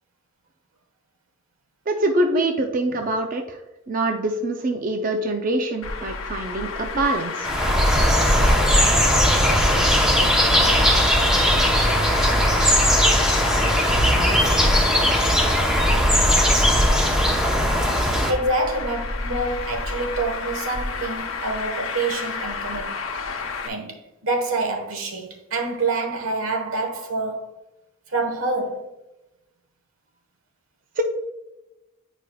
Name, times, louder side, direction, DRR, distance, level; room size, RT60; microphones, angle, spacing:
voice 1, 1.9-3.6 3.9-7.5 31.0-31.1, right 1 dB, 40° right, 0.5 m, -24 dB
Traffic noise roadway noise, 5.8-23.7, left 3 dB, 75° left, 0.9 m, -30 dB
sound 1, 7.4-18.3, equal, 5° right, 0.8 m, -18 dB
voice 2, 18.3-22.9 23.6-27.6 28.1-28.9, right 2 dB, 85° right, 1.3 m, -27 dB
8.9 x 4.9 x 2.3 m
head